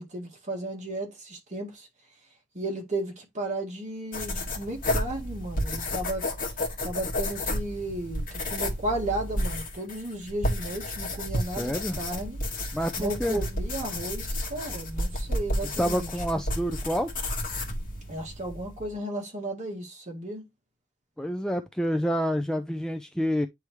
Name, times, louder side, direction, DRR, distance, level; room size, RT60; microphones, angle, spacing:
voice 1, 0.0-1.9 2.5-6.3 6.8-12.4 13.0-16.1 18.1-20.4, right 1 dB, 35° right, 1.9 m, -34 dB
Pencil or Marker writing and scribble on paper, 4.1-19.0, left 1 dB, 40° left, 1.7 m, -32 dB
voice 2, 11.3-12.0 12.7-13.4 15.8-17.3 21.2-23.5, equal, 5° left, 0.4 m, -28 dB
9.4 x 3.4 x 3.0 m
head